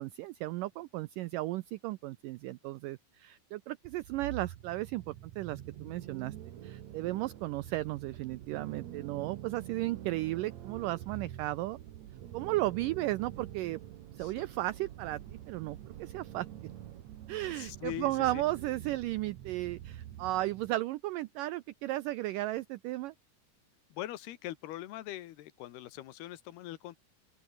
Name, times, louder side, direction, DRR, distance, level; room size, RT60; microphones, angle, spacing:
voice 1, 0.0-6.3 6.6-11.8 12.3-13.8 14.1-16.5 17.3-23.1, right 17 dB, 90° right, 1.9 m, -35 dB
sound 1, 3.8-20.7, right 12 dB, 60° right, 1.9 m, -46 dB
voice 2, 17.5-18.4 23.9-27.0, left 14 dB, 85° left, 3.3 m, -42 dB
open air
omnidirectional pair, 4.5 m